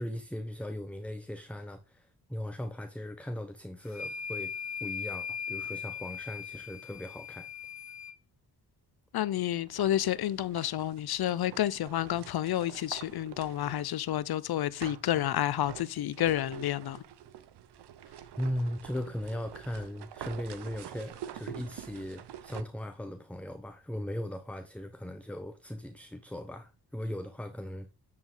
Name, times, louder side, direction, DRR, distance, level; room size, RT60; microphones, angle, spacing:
voice 1, 0.0-4.5 4.8-7.5 18.4-27.9, left 1 dB, 5° left, 0.8 m, -38 dB
sound 1, 3.9-8.1, left 7 dB, 45° left, 1.1 m, -39 dB
voice 2, 9.1-17.0, left 12 dB, 65° left, 0.7 m, -30 dB
sound 2, 9.6-14.2 14.8-22.6, right 10 dB, 85° right, 0.8 m, -47 dB
7.7 x 7.1 x 3.8 m
cardioid pair, 65°, 40 cm